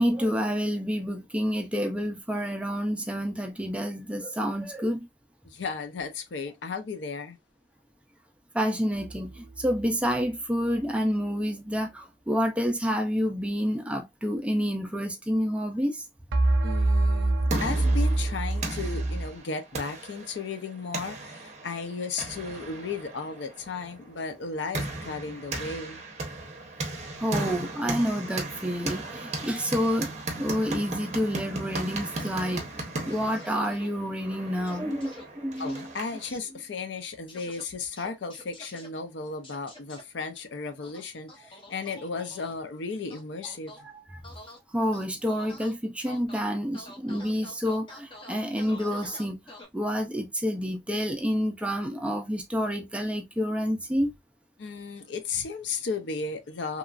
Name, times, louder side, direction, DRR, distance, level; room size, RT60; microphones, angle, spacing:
voice 1, 0.0-5.1 8.5-16.1 27.2-35.9 43.8-44.2 44.7-49.4 49.7-54.1, equal, 5° right, 0.4 m, -29 dB
voice 2, 5.4-7.4 16.6-26.0 35.6-43.7 54.6-56.8, left 4 dB, 65° left, 0.5 m, -35 dB
sound 1, 8.9-9.8 16.3-19.3, right 2 dB, 85° right, 0.5 m, -25 dB
sound 2, 17.1-36.3, right 2 dB, 35° right, 0.7 m, -37 dB
sound 3, 32.2-32.6 33.1-33.9 34.7-35.2 35.6-35.8 37.3-37.6 38.0-38.9 39.4-40.0 40.8-42.5 43.1-43.8 44.2-44.6 44.9-45.7 46.1-46.4 46.7-49.6, left 1 dB, 25° left, 0.8 m, -46 dB
2.9 x 2.4 x 2.3 m
head